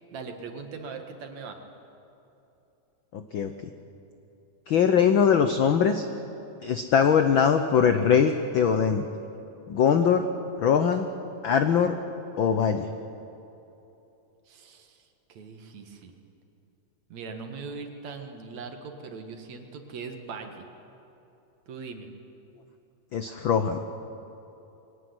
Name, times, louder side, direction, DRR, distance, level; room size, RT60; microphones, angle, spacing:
voice 1, 0.1-1.6 14.5-15.0 15.3-16.1 17.1-20.7 21.7-22.1, right 4 dB, 65° right, 5 dB, 3.0 m, -40 dB
voice 2, 3.1-3.5 4.7-6.1 6.6-9.0 9.7-10.3 10.6-11.1 11.4-11.9 12.4-12.9 23.1-23.8, left 7 dB, 75° left, 8 dB, 1.1 m, -22 dB
23.5 x 18.5 x 9.6 m, 2.9 s
omnidirectional pair, 3.5 m